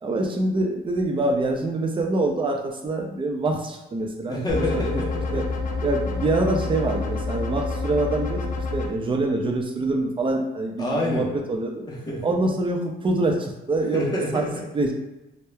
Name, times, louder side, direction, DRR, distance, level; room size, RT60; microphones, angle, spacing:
voice 1, 0.0-4.9 5.3-5.4 5.8-8.5 8.7-11.8 12.2-14.0 14.3-14.4 14.7-14.9, right 2 dB, 25° right, 2 dB, 0.5 m, -25 dB
voice 2, 4.3-5.4 10.8-11.3 11.8-12.2 13.9-14.6, left 1 dB, 20° left, -5 dB, 0.9 m, -27 dB
sound 1, 4.5-8.9, left 3 dB, 40° left, 0.4 m, -28 dB
3.0 x 2.0 x 2.3 m, 0.99 s
cardioid pair, 90°, 20 cm